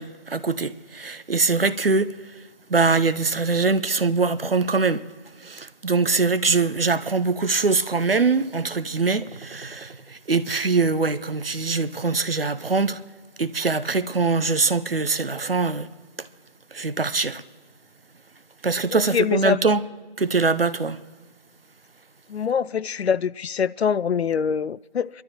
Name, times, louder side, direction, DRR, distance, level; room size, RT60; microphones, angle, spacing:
voice 1, 0.0-2.1 2.7-5.0 5.4-13.0 13.4-15.9 16.2-16.3 16.7-17.4 18.6-19.8 20.2-21.0, right 4 dB, 65° right, 0.7 m, -23 dB
voice 2, 18.9-19.6 22.3-25.1, left 7 dB, 90° left, 0.5 m, -24 dB
25.0 x 12.5 x 2.9 m
figure-of-eight pair, 175°, 31 cm